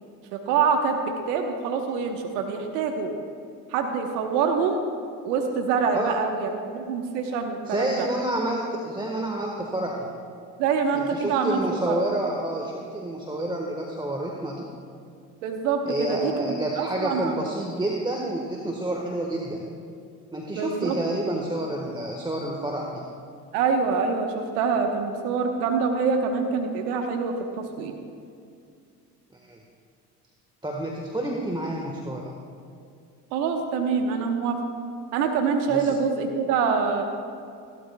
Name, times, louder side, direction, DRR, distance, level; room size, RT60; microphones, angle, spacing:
voice 1, 0.3-1.0 1.3-3.1 3.7-4.8 5.2-8.1 10.6-12.0 15.4-17.4 20.5-21.0 21.3-21.4 23.5-27.9 33.3-34.6 35.1-37.0, right 5 dB, 75° right, 4 dB, 1.2 m, -25 dB
voice 2, 7.7-10.1 10.9-14.7 15.9-19.7 20.3-23.1 29.3-29.6 30.6-32.3 35.7-35.9, right 1 dB, 10° right, -1 dB, 1.3 m, -29 dB
16.0 x 12.5 x 2.3 m, 2.4 s
hypercardioid pair, 70°, 46 cm